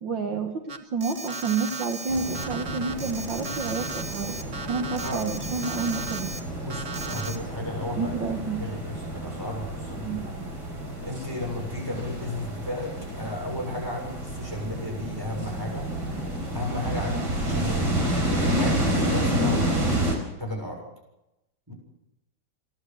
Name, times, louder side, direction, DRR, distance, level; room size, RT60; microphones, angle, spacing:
voice 1, 0.0-4.3 4.7-6.3 8.0-8.6 10.0-10.5, right 4 dB, 75° right, 5 dB, 2.2 m, -30 dB
Alarm, 0.7-6.4 6.7-7.4, right 4 dB, 40° right, 1.7 m, -36 dB
sound 1, 2.1-20.2, right 1 dB, 55° right, 5.2 m, -30 dB
voice 2, 6.6-8.2 8.6-10.3 11.0-15.9 16.5-20.1 20.4-20.8 21.7-21.8, left 1 dB, 10° right, 0 dB, 6.8 m, -34 dB
29.5 x 11.5 x 8.0 m, 0.93 s
omnidirectional pair, 2.1 m